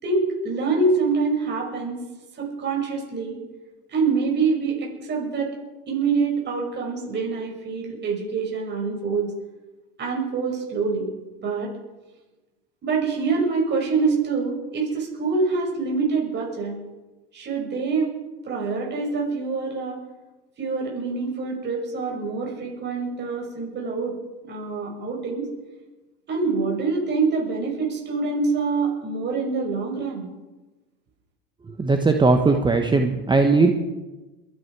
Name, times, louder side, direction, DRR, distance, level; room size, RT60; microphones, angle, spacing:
voice 1, 0.0-2.0 2.3-3.4 3.9-5.5 5.9-9.3 10.0-11.1 11.4-11.7 12.8-16.7 17.3-18.1 18.4-20.0 20.6-24.1 24.4-25.5 26.3-30.3, right 4 dB, 35° right, -1 dB, 6.0 m, -25 dB
voice 2, 31.8-33.7, right 3 dB, 15° right, 5 dB, 1.1 m, -18 dB
22.5 x 10.0 x 4.8 m, 1.1 s
supercardioid pair, 105°, 30 cm